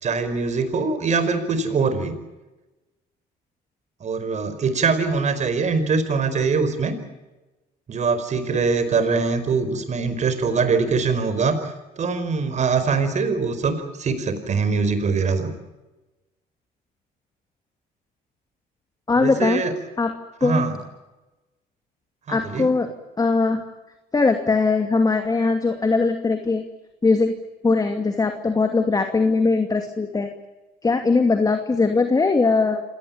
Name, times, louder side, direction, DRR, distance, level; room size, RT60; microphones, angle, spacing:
voice 1, 0.0-2.1 4.0-6.9 7.9-15.5 19.1-19.7 20.4-20.8 22.3-22.7, right 4 dB, 45° right, 10 dB, 4.9 m, -23 dB
voice 2, 19.1-19.6 20.0-20.1 20.4-20.7 22.3-22.9 23.2-23.6 24.1-26.6 27.0-27.3 27.6-30.3 30.8-32.8, left 3 dB, 20° left, 6 dB, 2.5 m, -20 dB
27.0 x 18.5 x 8.9 m, 1.1 s
cardioid pair, 110°, 17 cm